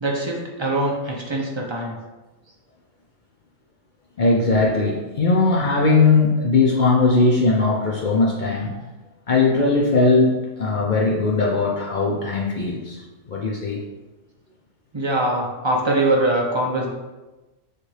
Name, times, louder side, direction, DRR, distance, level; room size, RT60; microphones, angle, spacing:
voice 1, 0.0-2.0 14.9-16.9, right 1 dB, 40° right, -1 dB, 0.4 m, -22 dB
voice 2, 4.2-8.7 9.3-13.8, left 3 dB, 60° left, -2 dB, 0.5 m, -19 dB
6.6 x 2.5 x 3.2 m, 1.1 s
omnidirectional pair, 1.4 m